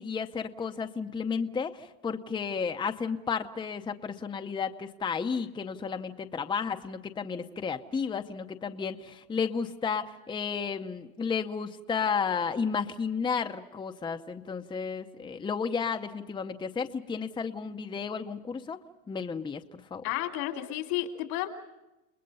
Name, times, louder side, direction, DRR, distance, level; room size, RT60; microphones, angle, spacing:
voice 1, 0.0-18.8 19.1-20.0, left 6 dB, 10° left, 6 dB, 0.7 m, -32 dB
voice 2, 20.0-21.5, left 14 dB, 85° left, 5 dB, 3.1 m, -32 dB
30.0 x 20.5 x 5.5 m, 0.99 s
cardioid pair, 145°, 44 cm